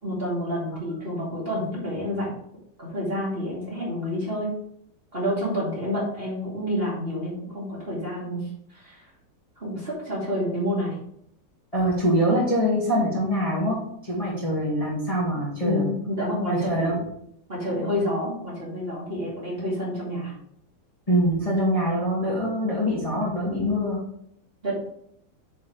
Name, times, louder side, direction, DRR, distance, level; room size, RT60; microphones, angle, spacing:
voice 1, 0.0-2.3 2.8-4.5 5.1-8.4 8.7-9.0 9.6-10.9 15.2-15.3 15.6-16.9 17.5-20.3 24.6-24.8, equal, 30° right, -6 dB, 2.8 m, -28 dB
voice 2, 11.7-15.9 16.5-17.0 21.1-24.0, equal, 20° left, -7 dB, 1.9 m, -24 dB
8.3 x 4.6 x 3.3 m, 0.69 s
omnidirectional pair, 1.9 m